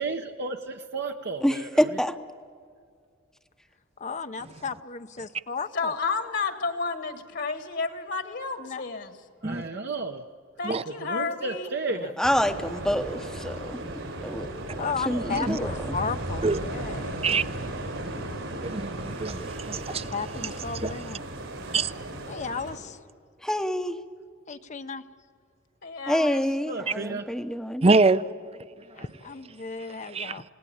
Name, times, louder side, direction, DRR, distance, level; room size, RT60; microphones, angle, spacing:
voice 1, 0.0-1.9 9.4-10.2 10.9-12.1 15.1-15.5 26.7-27.3, right 3 dB, 55° right, 0.9 m, -33 dB
voice 2, 1.4-2.2 12.2-13.6 14.2-14.5 15.1-15.7 23.4-24.0 26.1-27.8, equal, 5° left, 0.8 m, -26 dB
voice 3, 4.0-5.9 8.6-8.8 9.7-9.8 11.9-12.1 14.8-17.3 19.9-21.3 22.3-23.0 24.5-25.0 29.0-30.4, left 5 dB, 35° left, 0.7 m, -35 dB
voice 4, 5.7-9.1 10.6-11.7 25.8-26.4, left 4 dB, 60° left, 1.7 m, -31 dB
sound 1, 12.2-22.8, right 1 dB, 80° right, 5.2 m, -35 dB
voice 5, 18.6-20.1 20.8-20.9 21.7-21.9 26.9-27.0 27.8-28.3 30.1-30.4, right 3 dB, 30° right, 0.6 m, -24 dB
29.0 x 18.5 x 8.6 m
head